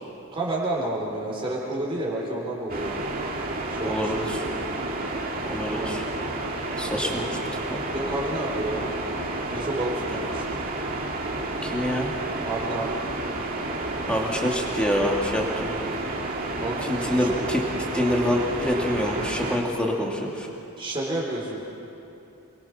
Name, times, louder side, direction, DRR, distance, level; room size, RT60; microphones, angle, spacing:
voice 1, 0.3-2.9 3.7-4.1 5.6-5.9 7.9-8.9 9.5-10.6 12.4-13.0 16.5-17.3 20.8-21.6, right 1 dB, 25° right, -4 dB, 3.8 m, -30 dB
sound 1, 2.7-19.6, right 2 dB, 40° right, 2.3 m, -30 dB
voice 2, 3.8-4.4 5.5-6.0 6.8-7.4 7.7-7.8 11.6-12.1 14.1-15.8 16.8-17.6 17.9-20.5, equal, 5° left, -2 dB, 2.7 m, -26 dB
28.0 x 22.5 x 6.0 m, 2.8 s
head